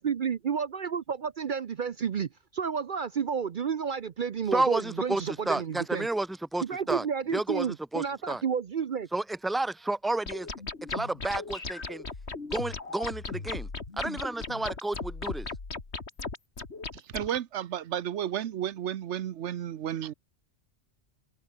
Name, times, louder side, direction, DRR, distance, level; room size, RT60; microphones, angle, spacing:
voice 1, 0.0-6.1 6.6-9.1, right 7 dB, 50° right, 0.8 m, -31 dB
voice 2, 4.5-7.1 7.3-8.4 9.1-10.5 10.9-12.0 12.5-13.7 14.0-15.5, right 2 dB, ahead, 1.0 m, -31 dB
sound 1, 10.3-17.3, left 3 dB, 70° left, 2.8 m, -37 dB
voice 3, 16.9-20.1, right 10 dB, 90° right, 1.1 m, -32 dB
omnidirectional pair, 1.2 m